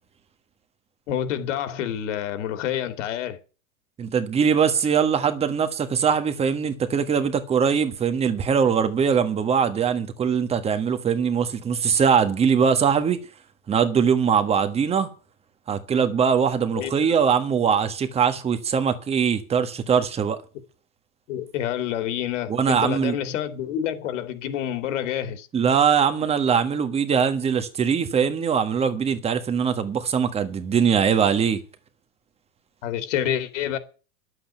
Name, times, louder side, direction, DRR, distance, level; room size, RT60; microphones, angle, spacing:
voice 1, 1.1-3.4 16.7-17.2 21.3-25.5 32.8-33.8, left 10 dB, 60° left, 2.8 m, -28 dB
voice 2, 4.0-13.2 13.7-15.1 15.7-20.4 22.5-23.2 25.5-31.6, right 7 dB, 15° right, 1.5 m, -22 dB
11.5 x 8.1 x 9.0 m
supercardioid pair, 150°, 41 cm